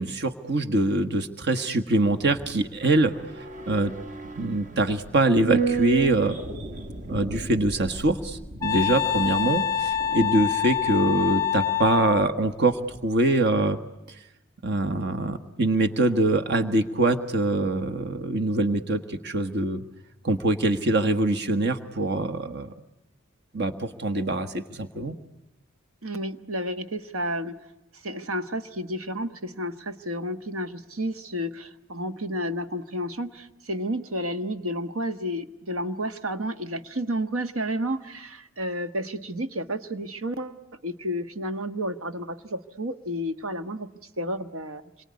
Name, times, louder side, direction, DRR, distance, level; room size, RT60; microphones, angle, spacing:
voice 1, 0.0-3.1 3.7-3.9 4.4-6.4 7.1-13.8 14.6-19.8 20.2-22.7 23.5-25.2, right 2 dB, 55° right, 9 dB, 1.5 m, -24 dB
sound 1, 2.0-12.5 12.8-12.9, right 4 dB, 40° right, 1.4 m, -34 dB
Wind instrument woodwind instrument, 8.6-12.3, left 9 dB, 15° left, 1.0 m, -26 dB
voice 2, 26.0-27.6 27.9-43.9 44.2-44.8, equal, 80° right, 8 dB, 1.5 m, -31 dB
27.0 x 23.0 x 9.6 m, 0.97 s
head